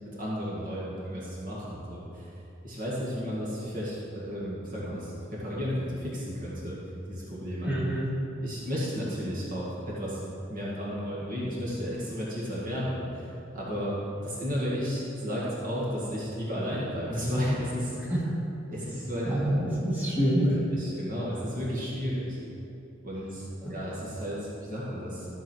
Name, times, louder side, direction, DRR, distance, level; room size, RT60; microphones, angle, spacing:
voice 1, 0.0-2.3 2.6-6.8 7.1-7.7 8.4-10.2 10.5-14.0 14.2-17.9 18.7-19.3 20.4-22.4 23.0-25.3, equal, 45° right, -6 dB, 2.0 m, -33 dB
voice 2, 7.6-8.1 18.1-18.2 19.2-20.6 23.6-23.7, equal, 10° right, -8 dB, 2.5 m, -26 dB
14.0 x 6.8 x 4.5 m, 2.8 s
head